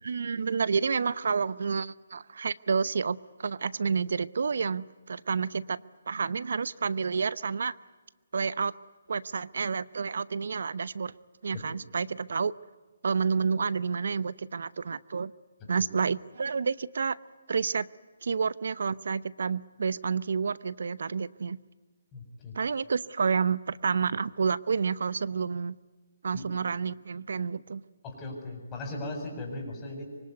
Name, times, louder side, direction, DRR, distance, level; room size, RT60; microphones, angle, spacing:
voice 1, 0.0-7.7 8.3-8.7 9.1-11.1 11.4-12.5 13.0-15.3 15.7-17.2 17.5-17.9 18.2-21.6 22.5-25.8 26.2-27.8, right 5 dB, 70° right, 18 dB, 0.8 m, -29 dB
voice 2, 22.1-22.5 26.3-26.5 28.0-30.0, left 2 dB, 20° left, 2 dB, 7.6 m, -38 dB
25.0 x 24.0 x 9.5 m, 1.4 s
hypercardioid pair, 150°, 0 cm